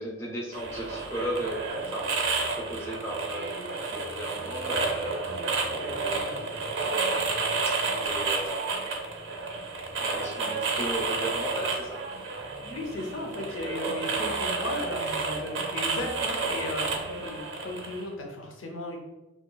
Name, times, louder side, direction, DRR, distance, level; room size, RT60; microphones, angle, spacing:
voice 1, 0.0-5.2 5.7-7.3 7.6-8.8 10.0-12.0 13.6-13.7, equal, 15° left, -3 dB, 0.3 m, -36 dB
sound 1, 0.5-18.0, right 4 dB, 80° right, 0.5 m, -31 dB
voice 2, 12.6-19.0, left 1 dB, 80° left, 1 dB, 0.6 m, -35 dB
2.9 x 2.2 x 2.2 m, 1.1 s
head